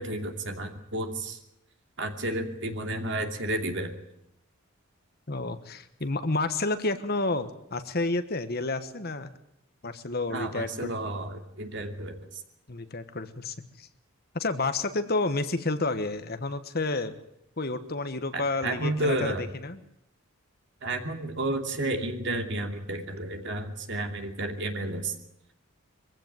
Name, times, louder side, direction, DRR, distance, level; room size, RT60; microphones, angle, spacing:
voice 1, 0.0-1.4 2.0-3.9 10.3-12.1 18.3-19.4 20.8-25.1, right 1 dB, 55° right, 5 dB, 2.7 m, -31 dB
voice 2, 5.3-9.3 9.8-10.9 12.7-13.9 14.3-17.1 17.6-19.8, left 2 dB, 45° left, 10 dB, 1.3 m, -30 dB
23.0 x 15.5 x 9.3 m, 0.79 s
head